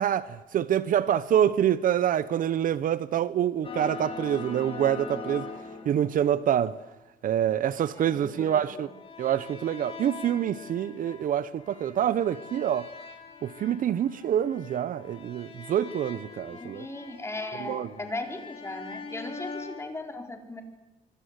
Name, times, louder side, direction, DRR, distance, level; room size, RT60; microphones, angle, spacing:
voice 1, 0.0-5.5 5.9-6.7 7.2-8.9 9.2-12.9 13.4-16.9 17.6-17.9, right 10 dB, 55° right, 0.9 m, -26 dB
sound 1, 3.6-6.8 7.7-19.9, left 4 dB, 35° left, 5.7 m, -43 dB
voice 2, 7.9-8.9 16.5-20.6, left 2 dB, 15° left, 4.1 m, -38 dB
25.0 x 25.0 x 8.1 m
cardioid pair, 110°, 17 cm